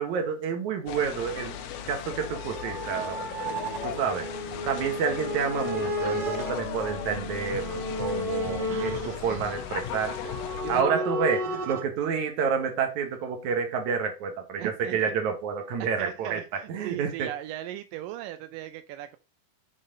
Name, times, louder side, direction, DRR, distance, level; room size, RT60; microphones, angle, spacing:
voice 1, 0.0-1.6 1.9-3.5 3.8-4.3 4.7-10.2 10.7-17.3, right 6 dB, 65° right, 2.7 m, -29 dB
sound 1, 0.9-10.8, left 10 dB, 90° left, 2.4 m, -37 dB
sound 2, 1.2-11.8, left 1 dB, 50° right, 1.7 m, -34 dB
voice 2, 8.7-9.6 10.6-11.1 14.6-15.1 15.8-19.2, right 13 dB, 90° right, 2.3 m, -38 dB
7.3 x 4.0 x 5.0 m
omnidirectional pair, 3.8 m